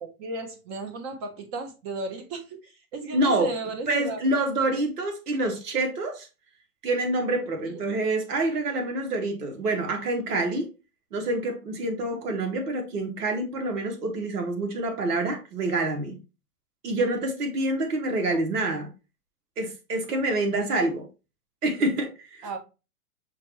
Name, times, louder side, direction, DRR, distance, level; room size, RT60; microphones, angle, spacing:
voice 1, 0.2-4.2 18.3-18.4 22.4-22.6, right 3 dB, 30° right, 0.7 m, -34 dB
voice 2, 3.1-3.5 3.9-6.3 6.8-10.7 11.1-16.2 16.8-18.9 19.6-21.1 21.6-22.5, right 2 dB, 80° right, 1.2 m, -27 dB
5.7 x 2.3 x 3.1 m
hypercardioid pair, 120°, 45 cm